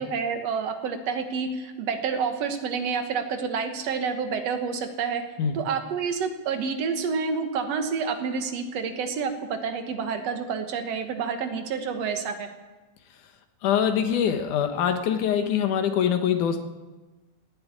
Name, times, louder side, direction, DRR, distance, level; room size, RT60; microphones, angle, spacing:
voice 1, 0.0-5.2 5.5-12.5, right 5 dB, 60° right, 6 dB, 2.2 m, -29 dB
voice 2, 13.6-16.6, left 8 dB, 75° left, 6 dB, 2.7 m, -24 dB
16.5 x 8.8 x 9.6 m, 1.2 s
omnidirectional pair, 3.6 m